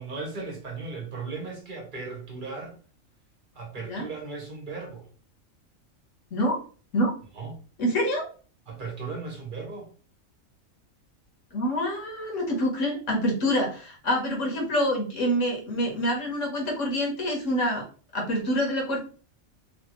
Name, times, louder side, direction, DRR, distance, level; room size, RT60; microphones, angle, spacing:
voice 1, 0.0-2.8 3.5-5.1 7.3-7.6 8.7-9.9, right 4 dB, 40° right, 1.0 m, -36 dB
voice 2, 7.8-8.3 11.5-17.8 18.1-19.0, equal, 65° left, 1.3 m, -26 dB
3.2 x 2.5 x 2.9 m
omnidirectional pair, 1.4 m